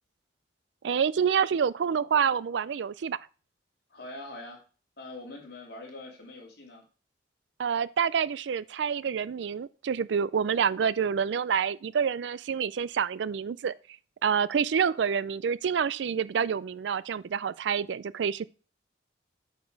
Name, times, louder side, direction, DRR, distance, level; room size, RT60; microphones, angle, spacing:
voice 1, 0.8-3.2 7.6-13.7 14.2-18.5, right 7 dB, 70° right, 0.4 m, -27 dB
voice 2, 3.9-4.6 5.0-6.8, left 2 dB, 55° left, 3.0 m, -43 dB
8.1 x 5.2 x 4.6 m
head